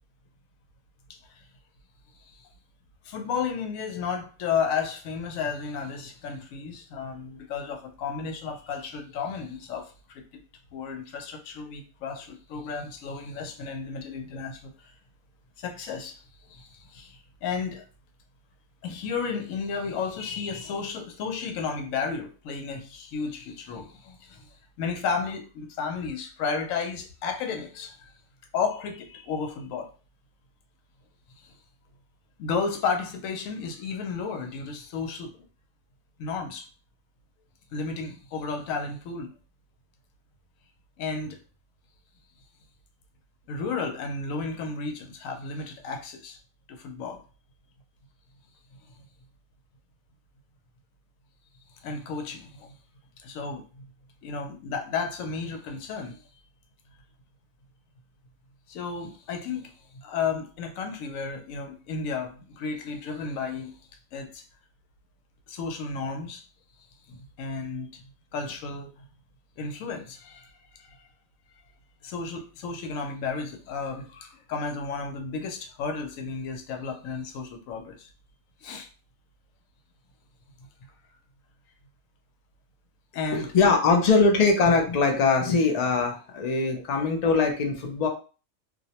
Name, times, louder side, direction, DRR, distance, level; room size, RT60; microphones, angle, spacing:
voice 1, 1.1-1.5 2.2-2.3 3.0-10.4 10.7-14.9 15.6-16.2 16.5-17.8 18.8-24.5 24.8-28.1 28.5-29.9 31.4-31.5 32.4-35.4 36.2-36.7 37.7-39.3 41.0-41.4 43.5-46.4 46.7-47.2 51.8-52.7 53.2-53.8 54.2-56.2 58.7-63.7 64.1-64.4 65.5-66.4 67.1-68.0 68.3-69.1 69.6-71.1 72.0-78.1 78.6-78.9 80.6-80.7 83.1-83.5 83.9-84.0 86.8-86.9, left 5 dB, 85° left, 1.0 m, -33 dB
voice 2, 83.3-88.1, left 4 dB, 70° left, 0.4 m, -22 dB
2.4 x 2.0 x 2.8 m
omnidirectional pair, 1.4 m